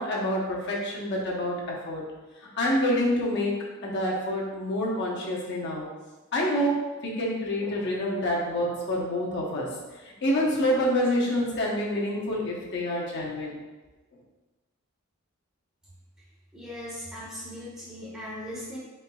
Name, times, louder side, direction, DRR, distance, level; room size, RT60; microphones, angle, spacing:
voice 1, 0.0-2.0 2.6-5.9 6.3-9.8 10.0-13.6, left 1 dB, 55° left, -3 dB, 0.8 m, -27 dB
voice 2, 16.5-18.8, equal, 5° right, -9 dB, 0.8 m, -38 dB
4.3 x 3.9 x 2.2 m, 1.2 s
head